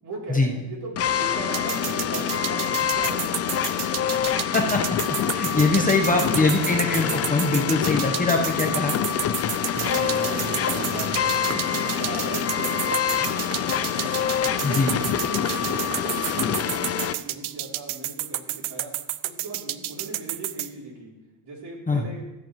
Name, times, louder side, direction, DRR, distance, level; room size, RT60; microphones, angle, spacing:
voice 1, 0.0-3.5 5.6-6.6 9.7-13.2 14.6-18.9 19.2-21.1 21.4-22.3, right 2 dB, 55° right, -3 dB, 3.4 m, -38 dB
sound 1, 1.0-17.1, left 9 dB, 35° left, 0.4 m, -26 dB
sound 2, 1.5-20.7, right 15 dB, 80° right, 0.6 m, -30 dB
voice 2, 5.3-8.9 14.6-14.9 21.9-22.0, left 3 dB, 15° left, 1 dB, 0.9 m, -22 dB
sound 3, 9.7-17.1, right 4 dB, 30° right, 0.9 m, -37 dB
14.0 x 8.7 x 3.1 m, 0.97 s
cardioid pair, 105°, 48 cm